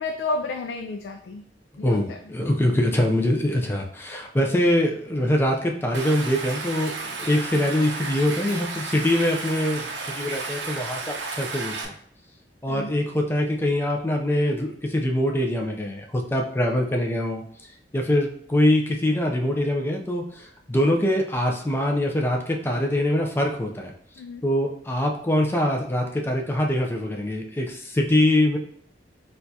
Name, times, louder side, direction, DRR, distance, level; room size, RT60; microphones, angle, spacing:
voice 1, 0.0-1.4 1.8-2.2 12.7-12.9 24.2-24.4, left 3 dB, 80° left, 5 dB, 0.3 m, -31 dB
voice 2, 1.8-9.9 10.1-11.9 12.6-17.4 17.9-23.9 24.4-28.6, left 1 dB, 15° left, 1 dB, 0.4 m, -23 dB
Stream, 5.9-11.9, right 3 dB, 85° right, 0.6 m, -33 dB
4.2 x 2.3 x 2.7 m, 0.63 s
head